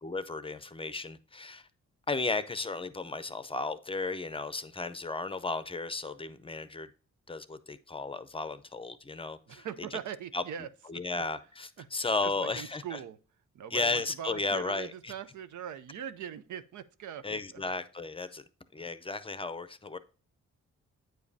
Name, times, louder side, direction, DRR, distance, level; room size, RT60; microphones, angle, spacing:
voice 1, 0.0-1.7 2.1-6.9 7.3-9.7 10.3-10.4 10.9-12.8 13.7-15.1 17.2-18.4 18.7-20.0, left 3 dB, 20° left, 0.5 m, -34 dB
voice 2, 9.5-10.7 11.8-11.9 12.2-13.2 13.5-17.6, right 9 dB, 85° right, 0.6 m, -41 dB
9.0 x 5.1 x 2.7 m
cardioid pair, 90°, 29 cm